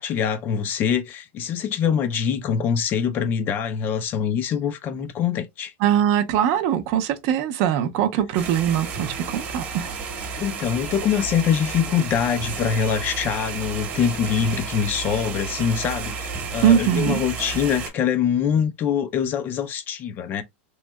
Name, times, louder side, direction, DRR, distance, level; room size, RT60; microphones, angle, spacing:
voice 1, 0.0-5.7 10.4-20.4, left 8 dB, 30° left, 0.4 m, -24 dB
voice 2, 5.8-9.9 16.6-17.2, right 10 dB, 45° right, 0.5 m, -21 dB
sound 1, 8.3-17.9, right 5 dB, 30° right, 1.0 m, -32 dB
3.0 x 2.7 x 2.2 m
supercardioid pair, 150°, 7 cm